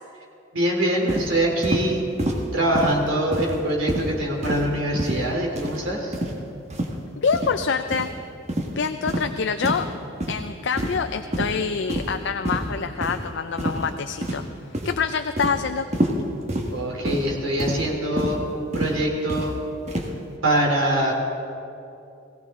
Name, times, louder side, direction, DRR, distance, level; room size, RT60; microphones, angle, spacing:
voice 1, 0.5-2.0 2.5-6.2 16.7-19.5 20.4-21.1, right 1 dB, 85° right, -1 dB, 3.2 m, -24 dB
sound 1, 1.1-1.3 1.6-1.9 2.2-2.4 2.7-3.0 3.3-3.6 3.9-4.1 4.4-4.7 5.0-5.2 5.6-5.8 6.1-6.3 6.7-6.9 7.3-7.5 7.9-8.1 8.5-8.7 9.1-9.3 9.6-9.8 10.2-10.4 10.8-11.1 11.3-11.5 11.9-12.2 12.4-12.7 13.0-13.2 13.6-13.9 14.2-14.5 14.7-15.0 15.4-15.6 15.9-16.2 16.5-16.7 17.0-17.3 17.6-17.8 18.2-18.3 18.7-18.9 19.3-19.5 19.9-20.1, right 1 dB, 35° right, 1.5 m, -27 dB
voice 2, 7.2-8.1 8.8-9.9 10.3-14.4 14.8-15.9, left 5 dB, 60° left, 8 dB, 0.5 m, -26 dB
21.0 x 16.5 x 3.7 m, 2.7 s
head